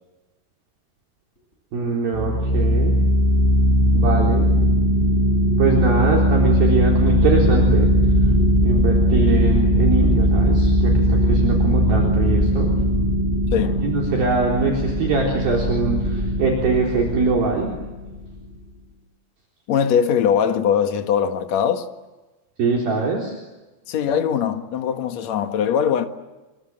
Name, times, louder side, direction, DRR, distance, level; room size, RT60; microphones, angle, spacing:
voice 1, 1.7-2.9 3.9-4.5 5.6-7.9 8.6-12.7 13.8-17.7 22.6-23.3, right 4 dB, 50° right, 5.4 m, -23 dB
sound 1, 2.1-18.4, equal, 10° left, 7.4 m, -19 dB
voice 2, 13.5-13.8 19.7-21.9 23.9-26.1, left 8 dB, 65° left, 1.7 m, -21 dB
28.5 x 26.0 x 7.8 m
omnidirectional pair, 5.7 m